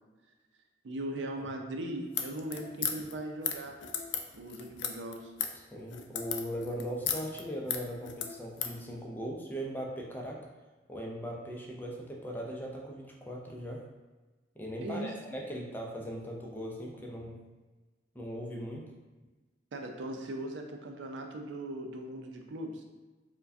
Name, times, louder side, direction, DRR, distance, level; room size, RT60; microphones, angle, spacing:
voice 1, 0.8-3.8 4.4-5.3 14.8-15.1 19.7-22.8, right 1 dB, 85° right, 3 dB, 0.5 m, -39 dB
sound 1, 2.1-8.8, left 8 dB, 80° left, 0.4 m, -36 dB
voice 2, 5.7-10.4 10.9-13.8 14.6-17.4 18.1-18.8, equal, 10° left, -2 dB, 0.5 m, -39 dB
4.5 x 2.2 x 2.6 m, 1.2 s
head